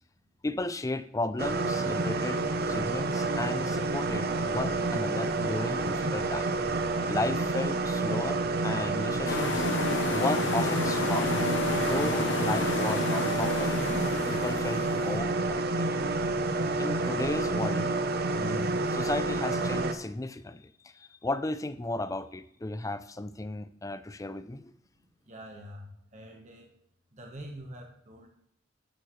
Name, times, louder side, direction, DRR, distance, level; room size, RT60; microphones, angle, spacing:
voice 1, 0.4-6.6 7.1-9.7 10.1-13.7 14.3-15.9 16.8-17.9 18.3-24.7, left 2 dB, 15° left, 13 dB, 0.5 m, -34 dB
sound 1, 1.4-19.9, right 3 dB, 55° right, 0.8 m, -29 dB
sound 2, 9.3-15.2, left 3 dB, 65° left, 1.0 m, -31 dB
voice 2, 25.3-26.7 27.1-28.3, equal, 35° right, 1 dB, 1.3 m, -45 dB
12.0 x 9.0 x 3.2 m, 0.70 s
head